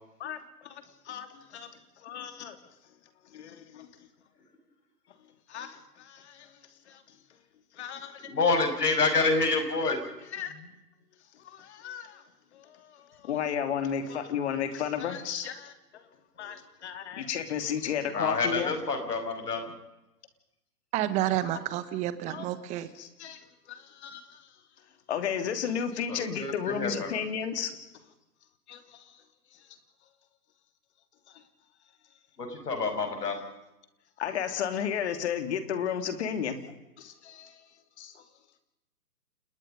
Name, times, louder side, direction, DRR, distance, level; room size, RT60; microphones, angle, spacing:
voice 1, 0.2-1.7 2.0-2.6 3.3-3.9 5.5-6.5 6.9-7.0 7.7-8.3 10.3-10.5 11.4-12.2 12.5-16.0 16.4-18.7 22.3-22.5 23.0-23.4 23.7-24.4 25.1-27.8 28.7-29.1 34.2-36.6 37.0-37.6 38.0-38.2, left 8 dB, 45° left, 8 dB, 2.9 m, -33 dB
voice 2, 8.3-10.0 18.1-19.7 26.1-27.1 32.4-33.4, left 3 dB, 70° left, 7 dB, 6.0 m, -27 dB
voice 3, 20.9-22.9, right 13 dB, 15° right, 14 dB, 1.1 m, -29 dB
29.0 x 19.5 x 5.4 m, 0.93 s
figure-of-eight pair, 135°, 48 cm